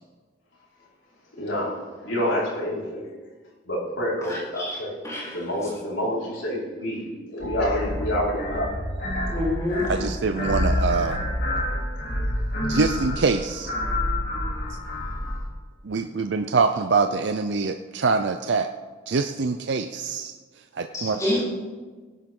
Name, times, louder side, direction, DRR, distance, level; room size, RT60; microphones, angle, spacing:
voice 1, 1.4-1.8 2.0-3.1 3.7-5.0 5.3-7.0 7.3-8.7, equal, 80° left, -6 dB, 4.8 m, -27 dB
voice 2, 4.3-4.8 5.0-5.4 9.3-9.9 20.9-21.4, left 1 dB, 15° left, -7 dB, 3.8 m, -28 dB
sound 1, 7.4-15.4, left 1 dB, 50° left, 3.0 m, -28 dB
voice 3, 9.9-11.2 12.7-13.7 14.7-14.8 15.8-18.7 19.1-20.3 20.7-21.4, right 4 dB, 65° right, 7 dB, 0.5 m, -24 dB
18.0 x 11.0 x 3.8 m, 1.4 s
head